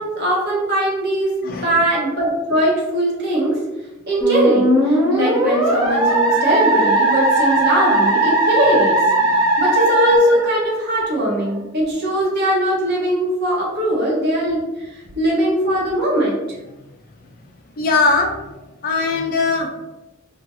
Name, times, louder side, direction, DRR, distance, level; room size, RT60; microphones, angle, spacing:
voice 1, 0.0-3.6 4.1-9.0 9.3-16.4, right 1 dB, 50° right, -4 dB, 0.9 m, -20 dB
voice 2, 1.4-1.7 9.2-9.5 17.8-18.3 18.8-19.7, left 3 dB, 40° left, 2 dB, 0.3 m, -20 dB
Musical instrument, 4.2-11.1, right 1 dB, 20° right, 0.9 m, -18 dB
2.4 x 2.2 x 2.8 m, 1.0 s
head